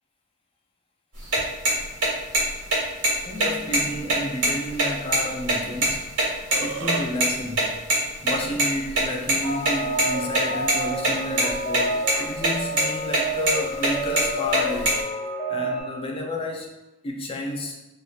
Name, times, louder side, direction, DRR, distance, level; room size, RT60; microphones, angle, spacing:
sound 1, 1.2-6.2 6.5-6.6 6.9-7.0 7.2-7.3 7.6-7.7 7.9-8.0 8.3-9.3 9.6-10.1 10.3-11.1 11.4-11.8 12.1-12.5 12.8-12.9 13.1-13.6 13.8-15.0, right 2 dB, 90° right, 1.4 m, -21 dB
voice 1, 3.2-6.2 6.6-7.9 8.2-15.0 15.5-16.7 17.0-17.8, left 1 dB, 25° left, 1 dB, 0.4 m, -31 dB
Burping eructation, 6.3-7.1, right 4 dB, 60° right, 0.3 m, -32 dB
sound 2, 9.4-15.8, right 1 dB, 40° left, 0.9 m, -29 dB
3.1 x 2.8 x 2.3 m, 1.0 s
head